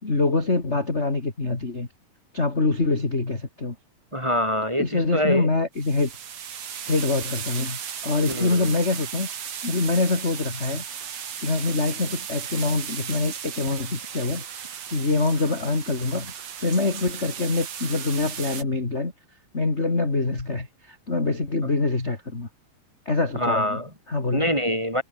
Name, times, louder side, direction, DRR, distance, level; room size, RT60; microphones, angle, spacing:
voice 1, 0.0-1.9 2.3-3.7 4.8-6.1 6.9-9.3 9.6-10.8 11.4-14.4 14.9-16.3 16.6-19.1 19.5-22.5 23.0-23.8 24.1-24.5, left 3 dB, 20° left, 3.1 m, -25 dB
voice 2, 4.1-5.5 8.3-8.7 21.6-21.7 23.3-23.9 24.3-25.0, equal, 10° right, 4.8 m, -25 dB
sound 1, 5.7-18.6, right 8 dB, 50° right, 2.8 m, -36 dB
omnidirectional pair, 4.1 m